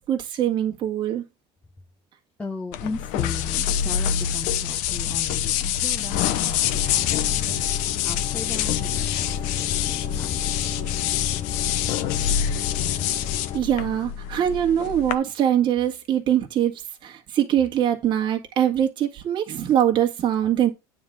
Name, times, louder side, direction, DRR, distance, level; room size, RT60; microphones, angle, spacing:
voice 1, 0.1-1.2 13.5-20.7, right 10 dB, 40° right, 1.7 m, -23 dB
voice 2, 2.4-7.7 8.0-10.8, left 3 dB, 10° left, 0.8 m, -37 dB
sound 1, 2.7-15.1, left 10 dB, 70° left, 0.9 m, -26 dB
sound 2, 6.6-13.6, left 8 dB, 40° left, 0.7 m, -31 dB
9.4 x 3.8 x 6.1 m
cardioid pair, 155°, 13 cm